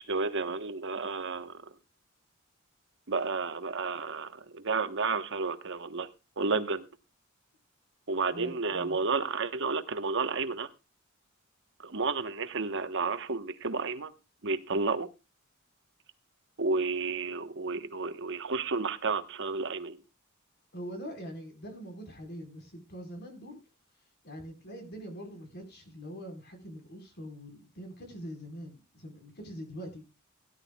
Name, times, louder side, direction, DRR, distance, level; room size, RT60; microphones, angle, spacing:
voice 1, 0.0-1.6 3.1-6.1 6.4-6.9 8.1-10.7 11.8-14.1 14.4-15.1 16.6-20.0, right 4 dB, 60° right, 1.2 m, -31 dB
voice 2, 8.3-9.0 20.7-23.6 24.2-30.0, equal, 50° left, 4.5 m, -43 dB
17.5 x 11.0 x 2.3 m
head